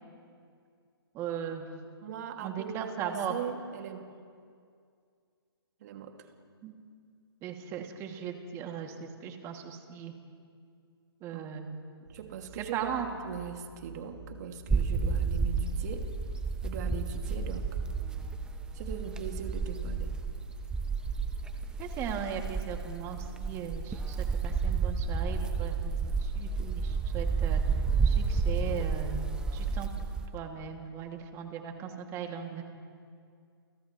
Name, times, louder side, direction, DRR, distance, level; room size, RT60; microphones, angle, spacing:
voice 1, 1.1-1.7 2.4-3.3 6.6-6.7 7.4-10.1 11.2-11.7 12.7-13.1 21.8-27.6 28.0-29.9 30.3-32.6, right 8 dB, 20° right, 3 dB, 2.4 m, -38 dB
voice 2, 2.0-4.2 5.8-6.3 11.3-11.4 12.1-16.1 16.6-17.8 18.7-20.1, right 7 dB, 40° right, 4 dB, 2.2 m, -40 dB
sound 1, 12.1-30.1, right 2 dB, 80° right, 4.1 m, -50 dB
sound 2, 14.7-30.3, right 4 dB, 5° right, 1.0 m, -31 dB
29.5 x 29.0 x 3.2 m, 2.3 s
hypercardioid pair, 145°, 13 cm